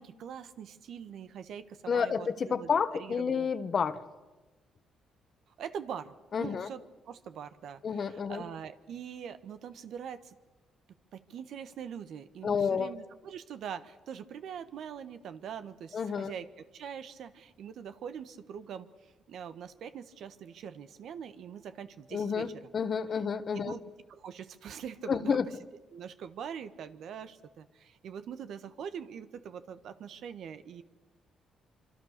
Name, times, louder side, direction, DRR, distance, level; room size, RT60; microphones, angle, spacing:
voice 1, 0.0-3.5 5.6-10.3 11.1-18.9 19.3-22.5 23.6-23.8 24.1-25.6 25.9-30.8, right 8 dB, 70° right, 11 dB, 1.4 m, -43 dB
voice 2, 1.9-4.0 6.3-6.7 7.8-8.4 12.4-12.9 15.9-16.3 22.1-23.8 25.1-25.4, left 6 dB, 45° left, 12 dB, 1.4 m, -30 dB
26.0 x 25.5 x 6.7 m, 1.2 s
cardioid pair, 90°, 0 cm